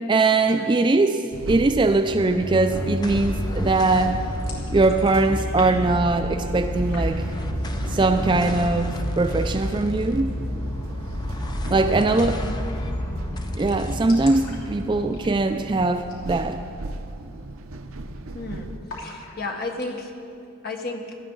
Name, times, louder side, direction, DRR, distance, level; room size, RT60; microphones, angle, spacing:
voice 1, 0.0-4.2 4.7-7.2 7.9-10.3 11.7-12.4 13.6-16.6, right 3 dB, 20° right, 8 dB, 0.3 m, -21 dB
sound 1, 1.3-18.8, right 2 dB, 70° right, 0.7 m, -36 dB
sound 2, 2.1-16.7, left 1 dB, 20° left, 0.6 m, -30 dB
sound 3, 4.3-5.7 5.9-6.7 6.9-7.5 7.8-8.3 8.7-8.8 9.1-9.8 11.4-11.6 11.9-12.0 12.2-12.3 12.7-13.0 13.3-13.4 13.6-15.6 16.0-16.3 16.6-16.7 17.2-17.5 17.8-18.4 18.9-19.9, left 3 dB, 70° left, 3.1 m, -43 dB
voice 2, 18.3-18.7 19.0-20.1 20.6-21.2, left 2 dB, 45° left, 2 dB, 1.4 m, -33 dB
18.0 x 12.5 x 3.9 m, 2.6 s
head